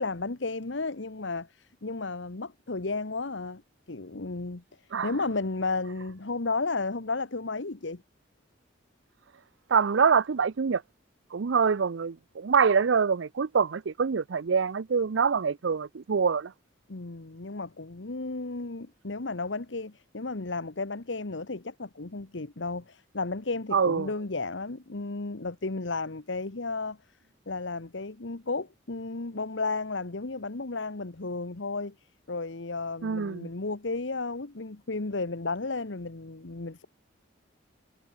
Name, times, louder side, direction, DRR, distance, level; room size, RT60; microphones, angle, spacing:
voice 1, 0.0-3.6 3.9-4.6 5.0-8.0 16.9-27.0 27.5-31.9 32.3-36.9, left 3 dB, 65° left, 1.2 m, -33 dB
voice 2, 9.7-10.8 11.3-16.5 23.7-24.1 33.0-33.5, right 6 dB, 70° right, 0.5 m, -25 dB
head